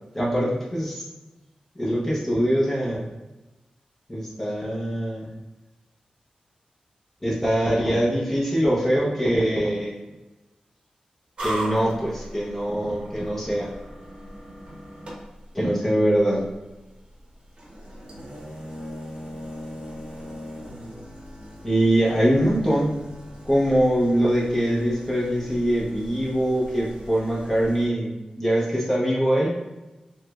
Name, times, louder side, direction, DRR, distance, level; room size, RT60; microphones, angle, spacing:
voice 1, 0.1-1.0 1.8-3.1 4.1-5.3 7.2-10.0 11.4-13.7 15.5-16.4 21.6-23.0 23.5-29.5, equal, 15° left, -5 dB, 0.6 m, -23 dB
sound 1, 11.4-27.9, equal, 50° right, 0.8 m, -39 dB
3.1 x 2.9 x 2.3 m, 1.1 s
wide cardioid pair, 175°, 2 cm